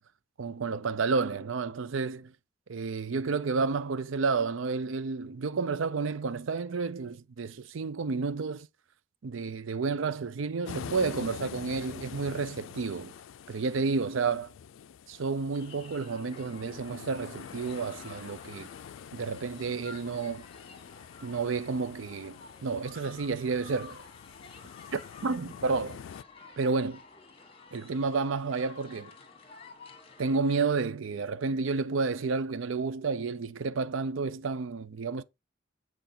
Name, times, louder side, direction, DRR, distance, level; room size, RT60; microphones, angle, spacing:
voice 1, 0.4-2.3 2.7-8.7 9.2-13.1 13.5-14.5 15.1-18.7 19.1-20.4 21.2-24.0 24.9-26.0 26.6-27.0 27.7-29.1 30.2-35.2, right 4 dB, 85° right, 0.5 m, -31 dB
sound 1, 10.6-26.2, left 7 dB, 85° left, 0.4 m, -46 dB
sound 2, 15.5-30.6, left 4 dB, 30° left, 1.6 m, -52 dB
7.9 x 4.6 x 4.3 m
head